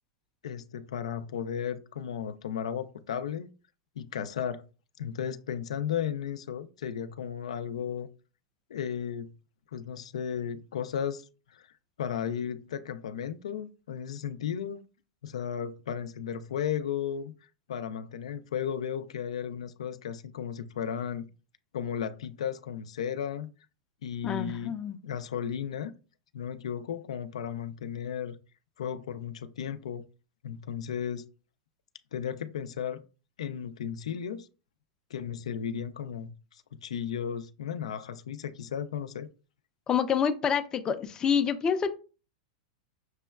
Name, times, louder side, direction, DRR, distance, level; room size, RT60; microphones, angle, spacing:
voice 1, 0.4-3.5 4.0-4.6 5.0-8.1 8.7-9.3 9.7-11.7 12.0-14.8 15.2-17.3 17.7-21.3 21.7-23.5 24.0-24.8 25.0-25.9 26.3-28.4 28.8-30.0 30.4-31.3 32.1-33.0 33.4-34.5 35.1-39.3, left 8 dB, 90° left, 0.3 m, -34 dB
voice 2, 24.2-25.0 39.9-41.9, left 7 dB, 20° left, 0.4 m, -27 dB
6.1 x 2.2 x 2.3 m
hypercardioid pair, 135°, 3 cm